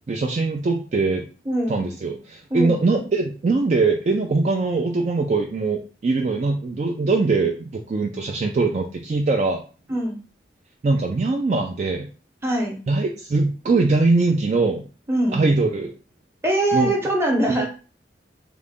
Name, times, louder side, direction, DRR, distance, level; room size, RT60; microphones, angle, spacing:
voice 1, 0.1-1.2 1.7-9.6 10.8-12.1 12.9-14.9 15.3-15.9 16.7-16.9 17.5-17.7, right 3 dB, 40° right, 2 dB, 0.3 m, -22 dB
voice 2, 1.5-1.8 2.5-2.8 9.9-10.2 12.4-12.8 15.1-15.4 16.4-17.7, right 1 dB, 15° right, -1 dB, 0.8 m, -22 dB
3.7 x 2.1 x 3.6 m, 0.37 s
head